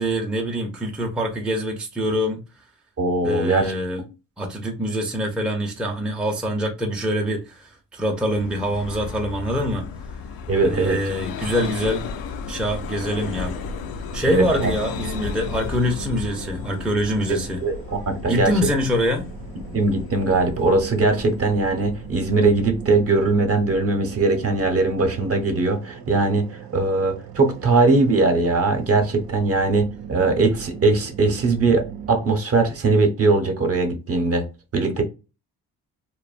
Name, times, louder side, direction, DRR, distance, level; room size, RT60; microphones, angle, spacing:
voice 1, 0.0-2.4 3.2-4.0 4.4-9.9 10.6-12.1 12.5-13.6 14.1-17.6 18.3-19.3, equal, 5° right, 0.5 m, -25 dB
voice 2, 3.0-4.1 10.5-11.0 14.2-14.7 17.6-18.5 19.7-26.5 26.7-34.4 34.7-35.0, right 3 dB, 40° right, 0.7 m, -20 dB
Vehicle, 8.1-23.5, left 5 dB, 75° left, 0.5 m, -34 dB
sound 1, 14.3-32.3, right 8 dB, 75° right, 0.6 m, -39 dB
2.5 x 2.2 x 2.4 m
cardioid pair, 90°, 36 cm